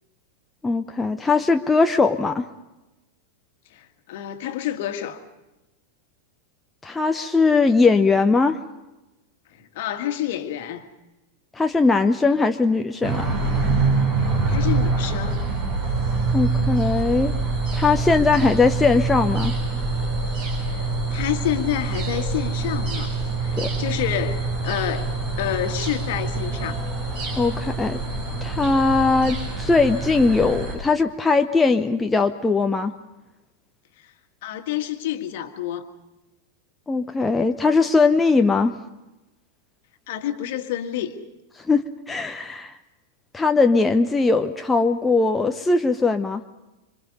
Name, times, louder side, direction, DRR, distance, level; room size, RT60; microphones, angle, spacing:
voice 1, 0.6-2.5 6.8-8.6 11.5-13.3 16.3-17.4 17.7-19.5 23.6-23.7 27.4-28.0 28.4-32.9 36.9-38.7 41.7-42.7 43.3-46.4, left 4 dB, 10° left, 5 dB, 0.9 m, -20 dB
voice 2, 3.7-5.2 9.5-10.8 14.5-15.4 20.6-23.1 23.4-26.8 34.0-34.1 34.4-35.9 40.1-41.1, left 11 dB, 50° left, 7 dB, 1.9 m, -29 dB
sound 1, 13.0-30.7, right 3 dB, 50° right, 7.7 m, -25 dB
26.5 x 25.5 x 5.4 m, 1.0 s
figure-of-eight pair, 90°, 0 cm